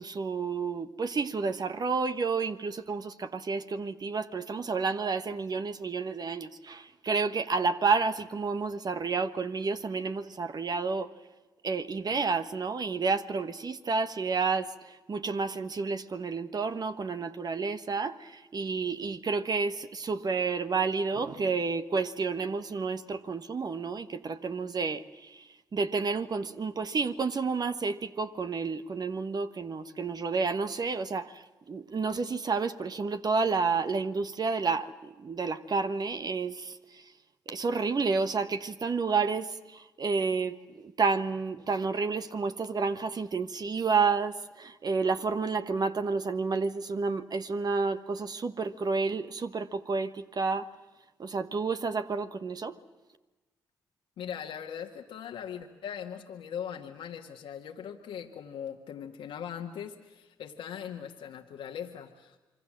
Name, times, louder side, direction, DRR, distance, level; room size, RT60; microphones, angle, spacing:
voice 1, 0.0-11.1 11.6-37.1 37.5-50.7 51.2-52.8, right 4 dB, 50° right, 10 dB, 1.3 m, -30 dB
voice 2, 54.2-62.4, left 8 dB, 75° left, 3 dB, 1.5 m, -40 dB
27.5 x 23.5 x 7.5 m, 1.2 s
supercardioid pair, 50°, 9 cm